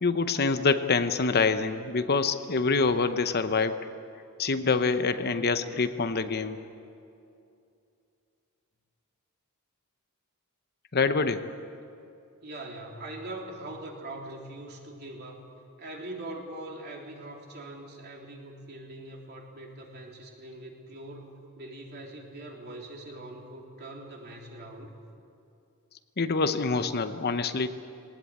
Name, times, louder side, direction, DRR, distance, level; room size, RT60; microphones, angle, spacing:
voice 1, 0.0-3.9 4.4-6.6 10.9-11.5 26.2-27.7, left 4 dB, 45° left, 10 dB, 0.8 m, -26 dB
voice 2, 12.4-15.4 15.8-24.9, right 1 dB, 50° right, 0 dB, 3.3 m, -42 dB
20.0 x 19.0 x 8.6 m, 2.6 s
head